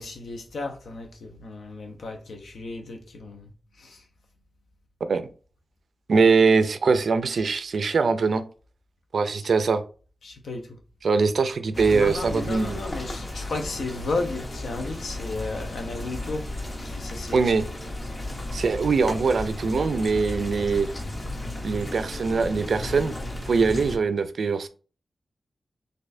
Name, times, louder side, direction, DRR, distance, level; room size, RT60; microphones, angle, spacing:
voice 1, 0.0-4.1 9.4-9.5 10.2-10.8 11.9-16.5 16.8-17.6, left 3 dB, 75° left, 0.7 m, -34 dB
voice 2, 6.1-8.4 9.1-9.8 11.0-12.8 17.3-17.6 18.5-20.9 21.6-23.1 23.5-24.7, right 4 dB, 60° right, 0.4 m, -22 dB
sound 1, 11.7-24.0, left 1 dB, 25° left, 0.6 m, -34 dB
4.1 x 2.5 x 2.6 m
wide cardioid pair, 175°, 0 cm